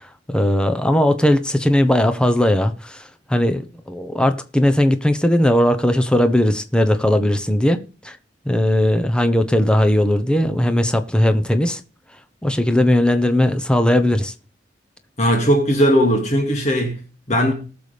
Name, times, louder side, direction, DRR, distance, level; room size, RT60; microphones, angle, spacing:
voice 1, 0.3-3.0 3.3-8.2 8.5-11.8 12.4-14.3, left 1 dB, 5° left, 0.9 m, -18 dB
voice 2, 15.2-17.5, equal, 40° left, 2.3 m, -18 dB
19.5 x 6.9 x 3.4 m
head